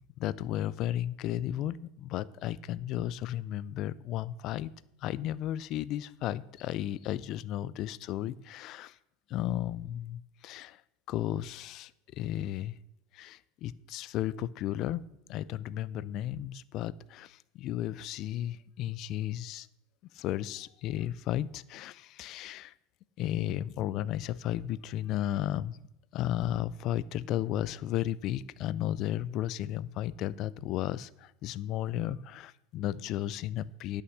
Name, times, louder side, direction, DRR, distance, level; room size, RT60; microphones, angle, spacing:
voice 1, 0.0-4.7 5.0-9.0 9.3-10.8 11.1-12.8 13.1-19.7 20.1-22.7 23.2-25.8 26.1-34.0, left 12 dB, 35° left, 18 dB, 0.3 m, -34 dB
11.5 x 6.5 x 6.3 m, 0.86 s
supercardioid pair, 170°, 0 cm